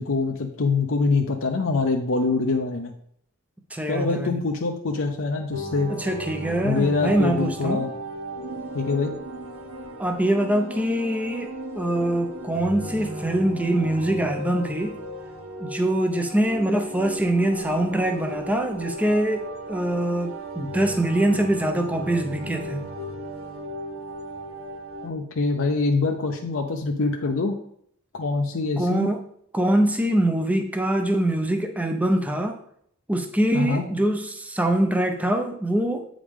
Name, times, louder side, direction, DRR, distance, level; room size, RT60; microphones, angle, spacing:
voice 1, 0.0-2.9 3.9-5.9 6.6-7.9 8.7-9.1 25.0-27.6 28.1-29.1 33.5-33.8, left 3 dB, 70° left, 2 dB, 0.7 m, -24 dB
voice 2, 3.7-4.4 5.9-7.9 10.0-15.0 15.6-22.8 28.8-29.3 29.5-32.6 33.1-36.1, right 1 dB, 5° right, 5 dB, 0.6 m, -24 dB
sound 1, 5.5-25.1, right 1 dB, 80° right, 1.0 m, -35 dB
8.3 x 5.0 x 3.6 m, 0.68 s
head